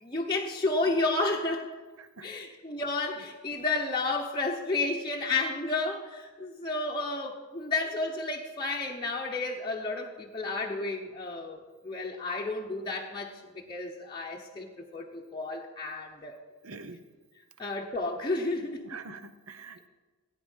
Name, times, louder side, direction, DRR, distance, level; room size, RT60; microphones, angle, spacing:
voice 1, 0.0-1.7 2.2-11.6 11.8-16.4 17.6-18.8, left 3 dB, 20° left, -2 dB, 0.8 m, -31 dB
voice 2, 2.0-2.4 16.6-17.0 18.8-19.9, right 4 dB, 65° right, 11 dB, 0.8 m, -45 dB
14.5 x 9.1 x 5.5 m, 1.3 s
head